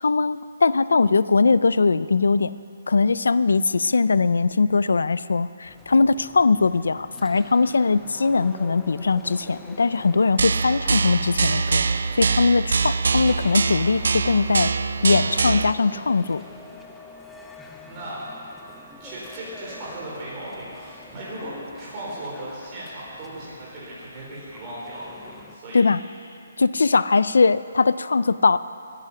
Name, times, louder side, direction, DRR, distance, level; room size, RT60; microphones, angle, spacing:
voice 1, 0.0-2.6 2.9-11.8 12.1-14.7 15.0-16.4 25.7-26.0 26.6-28.6, left 4 dB, 85° left, 16 dB, 0.4 m, -20 dB
sound 1, 5.6-25.6, left 2 dB, 5° left, 0.5 m, -46 dB
sound 2, 10.4-15.7, right 4 dB, 65° right, 0.5 m, -23 dB
voice 2, 17.9-18.4 19.0-25.9, right 1 dB, 20° right, -7 dB, 4.3 m, -37 dB
19.5 x 9.9 x 5.7 m, 2.6 s
hypercardioid pair, 175°, 0 cm